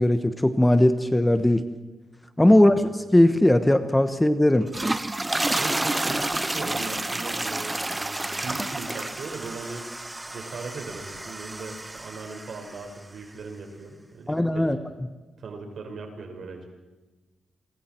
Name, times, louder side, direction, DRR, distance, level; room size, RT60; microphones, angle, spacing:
voice 1, 0.0-1.6 2.4-2.8 3.1-4.7 14.3-14.8, left 1 dB, 10° left, 10 dB, 1.2 m, -19 dB
sound 1, 4.6-12.9, right 2 dB, 15° right, 0.6 m, -30 dB
voice 2, 5.5-14.7 15.4-16.7, right 3 dB, 65° right, 3 dB, 5.3 m, -39 dB
28.0 x 24.0 x 4.6 m, 1.2 s
cardioid pair, 95°, 0 cm